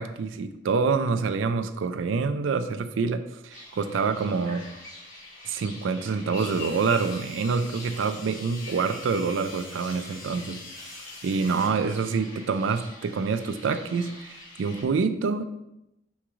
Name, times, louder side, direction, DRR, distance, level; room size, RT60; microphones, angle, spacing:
voice 1, 0.0-4.6 5.5-15.4, right 5 dB, 85° right, 10 dB, 0.4 m, -27 dB
sound 1, 3.5-14.8, left 2 dB, 40° left, 1.5 m, -44 dB
sound 2, 6.4-11.7, left 3 dB, 85° left, 0.8 m, -46 dB
3.6 x 3.0 x 4.8 m, 0.87 s
head